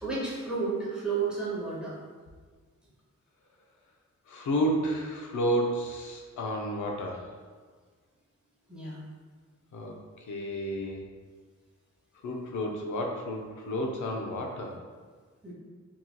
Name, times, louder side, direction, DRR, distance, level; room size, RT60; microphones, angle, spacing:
voice 1, 0.0-2.0 8.7-9.0 15.4-15.5, right 4 dB, 5° right, -7 dB, 0.8 m, -32 dB
voice 2, 4.3-7.3 9.7-11.1 12.2-14.7, equal, 90° left, 1 dB, 0.5 m, -31 dB
3.8 x 2.9 x 2.2 m, 1.5 s
wide cardioid pair, 155°, 29 cm